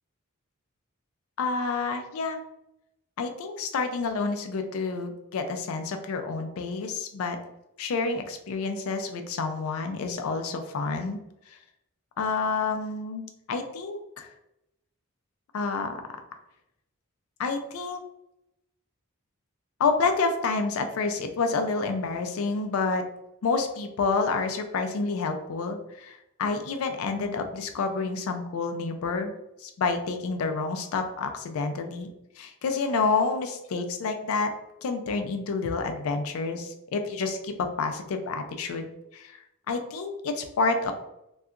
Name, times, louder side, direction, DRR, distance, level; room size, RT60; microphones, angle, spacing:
voice 1, 1.4-2.4 3.2-7.4 7.8-11.2 12.2-14.3 15.5-16.0 17.4-18.0 19.8-23.0 23.4-29.3 29.6-32.1 32.4-34.5 34.8-39.4 39.7-40.9, left 4 dB, 85° left, 6 dB, 0.4 m, -29 dB
2.7 x 2.3 x 2.4 m, 0.85 s
head